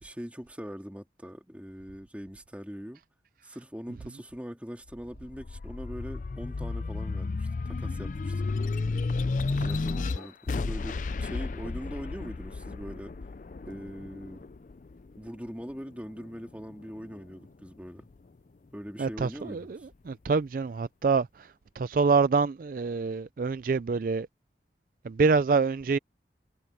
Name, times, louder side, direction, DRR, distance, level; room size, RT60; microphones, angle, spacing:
voice 1, 0.0-3.0 3.4-8.4 8.7-8.8 9.5-13.1 13.7-14.4 15.2-18.1 18.7-19.9, equal, 10° right, 2.8 m, -42 dB
sound 1, 4.9-15.7 16.2-17.3, left 3 dB, 45° left, 0.4 m, -33 dB
voice 2, 19.0-19.8 20.1-21.5 21.8-24.3 25.0-26.0, right 4 dB, 50° right, 0.4 m, -26 dB
head